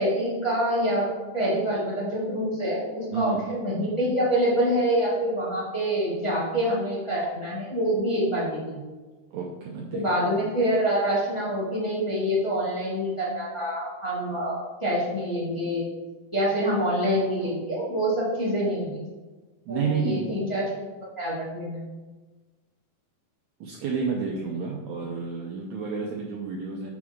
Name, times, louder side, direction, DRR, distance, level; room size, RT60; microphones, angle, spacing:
voice 1, 0.0-8.8 9.9-15.8 16.3-19.0 19.7-20.6 21.2-21.8, equal, 15° left, -8 dB, 0.9 m, -26 dB
voice 2, 9.3-10.0 19.7-20.5 23.6-26.9, right 5 dB, 80° right, -1 dB, 1.7 m, -30 dB
7.2 x 6.3 x 3.6 m, 1.3 s
omnidirectional pair, 4.1 m